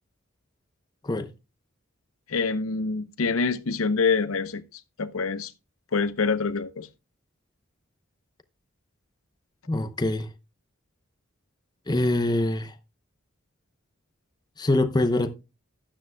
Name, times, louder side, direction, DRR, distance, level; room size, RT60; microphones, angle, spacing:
voice 1, 2.3-5.5 5.9-6.9, left 4 dB, 90° left, 0.7 m, -26 dB
voice 2, 9.7-10.3 11.9-12.7 14.6-15.3, left 1 dB, 20° left, 0.7 m, -24 dB
12.0 x 10.0 x 2.2 m
head